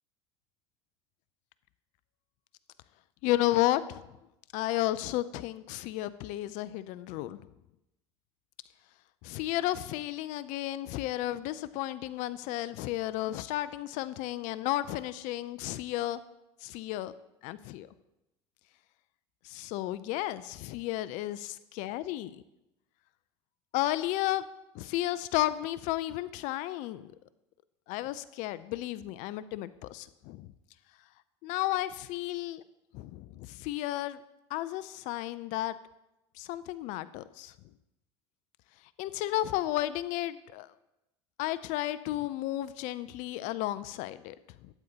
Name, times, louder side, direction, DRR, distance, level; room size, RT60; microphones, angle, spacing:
voice 1, 3.2-4.0 4.5-7.4 9.2-16.2 16.6-17.1 17.4-17.9 19.4-22.4 23.7-24.4 24.7-27.1 27.9-30.5 31.4-32.6 32.9-34.2 34.5-35.8 36.4-37.5 39.0-40.7 41.4-44.4 44.6-44.7, left 15 dB, 60° left, 15 dB, 0.4 m, -33 dB
12.5 x 8.0 x 2.8 m, 0.92 s
hypercardioid pair, 85°, 14 cm